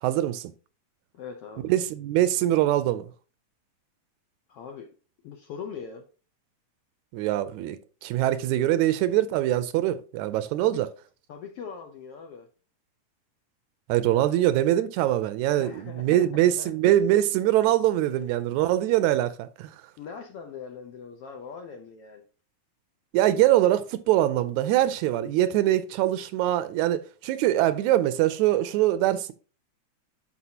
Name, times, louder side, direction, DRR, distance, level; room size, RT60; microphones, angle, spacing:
voice 1, 0.0-0.5 1.6-3.1 7.1-10.9 13.9-19.8 23.1-29.3, right 13 dB, 80° right, 1.8 m, -23 dB
voice 2, 1.1-1.7 4.5-4.9 5.2-6.0 10.6-10.8 11.3-12.5 15.6-16.7 20.0-22.2, left 6 dB, 70° left, 1.4 m, -41 dB
11.0 x 4.4 x 2.8 m
omnidirectional pair, 3.5 m